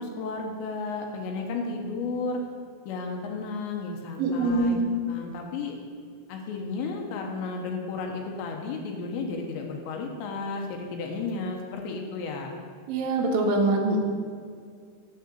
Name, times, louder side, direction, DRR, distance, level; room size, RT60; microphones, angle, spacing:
voice 1, 0.0-2.4 2.9-4.8 5.1-5.8 6.3-12.6, left 3 dB, 85° left, 2 dB, 3.0 m, -33 dB
voice 2, 4.2-4.8 12.9-14.0, right 2 dB, 75° right, -1 dB, 2.2 m, -24 dB
9.5 x 3.7 x 7.1 m, 2.1 s
omnidirectional pair, 5.3 m